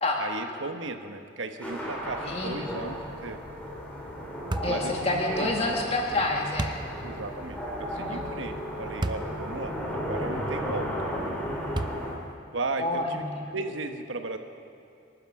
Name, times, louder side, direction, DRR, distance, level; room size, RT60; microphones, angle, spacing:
voice 1, 0.2-3.4 4.7-5.5 7.0-10.9 12.5-13.2 13.5-14.4, right 3 dB, 85° right, 6 dB, 1.2 m, -35 dB
sound 1, 1.6-12.1, equal, 5° left, 2.9 m, -34 dB
voice 2, 2.2-2.6 4.6-6.8 7.9-8.3 12.8-13.4, left 2 dB, 30° left, 0 dB, 1.7 m, -28 dB
sound 2, 4.5-4.8 6.6-6.9 9.0-9.3 9.9-10.0 11.7-12.2, right 2 dB, 25° right, 0.5 m, -31 dB
25.0 x 12.0 x 4.9 m, 2.4 s
head